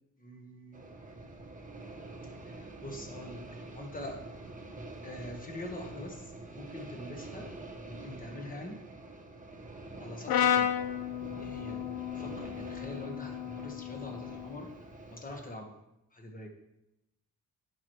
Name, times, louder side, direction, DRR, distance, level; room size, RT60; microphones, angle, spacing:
voice 1, 0.2-0.8 2.8-3.4 3.7-4.2 5.0-7.5 7.8-8.8 10.0-10.7 11.4-11.8 12.1-14.7 15.1-15.8 16.1-16.5, left 1 dB, 20° left, 2 dB, 1.4 m, -44 dB
sound 1, 0.7-15.5, right 2 dB, 20° right, 0.9 m, -46 dB
Brass instrument, 10.3-14.5, left 9 dB, 70° left, 0.6 m, -32 dB
11.0 x 4.7 x 3.2 m, 0.90 s
cardioid pair, 95°, 38 cm